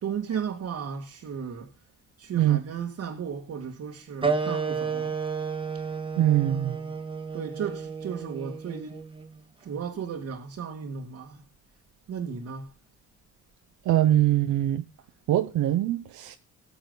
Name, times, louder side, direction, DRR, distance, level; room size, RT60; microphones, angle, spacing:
voice 1, 0.0-1.7 2.2-5.2 5.7-5.8 6.4-6.9 7.3-9.0 9.6-11.4 12.1-12.7, right 7 dB, 60° right, 2.1 m, -35 dB
sound 1, 4.2-9.3, right 5 dB, 15° right, 1.5 m, -31 dB
voice 2, 6.2-6.8 13.9-14.8 15.3-16.4, right 13 dB, 80° right, 0.8 m, -23 dB
18.5 x 7.1 x 3.9 m
cardioid pair, 90°, 30 cm